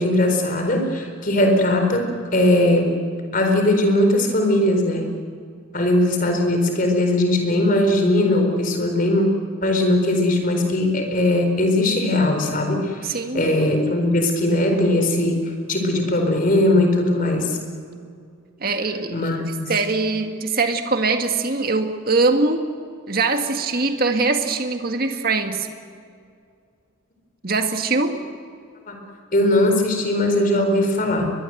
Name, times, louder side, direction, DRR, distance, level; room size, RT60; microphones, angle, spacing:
voice 1, 0.0-2.9 3.3-5.1 5.7-9.3 9.6-15.4 15.7-17.6 19.1-19.7 28.9-29.0 29.3-31.3, left 1 dB, 40° left, 4 dB, 4.3 m, -19 dB
voice 2, 13.0-13.5 18.6-19.3 19.7-22.7 23.1-25.7 27.4-28.2, right 3 dB, 45° right, 6 dB, 1.8 m, -22 dB
22.5 x 22.0 x 7.9 m, 2.3 s
head